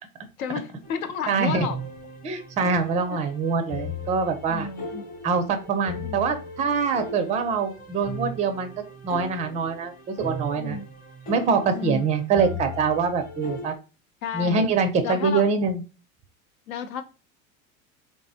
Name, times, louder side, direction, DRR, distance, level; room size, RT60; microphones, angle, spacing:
voice 1, 0.4-1.8 4.5-5.0 6.0-6.2 10.5-10.8 11.8-12.0 14.2-14.7 15.0-15.5 16.7-17.0, left 6 dB, 80° left, 0.7 m, -31 dB
sound 1, 0.8-13.7, left 1 dB, 20° left, 0.9 m, -38 dB
voice 2, 1.3-1.7 2.2-4.7 5.2-8.7 9.0-10.8 11.3-13.7 14.3-15.8, right 5 dB, 20° right, 0.4 m, -24 dB
3.3 x 2.0 x 2.6 m
hypercardioid pair, 95°, 42 cm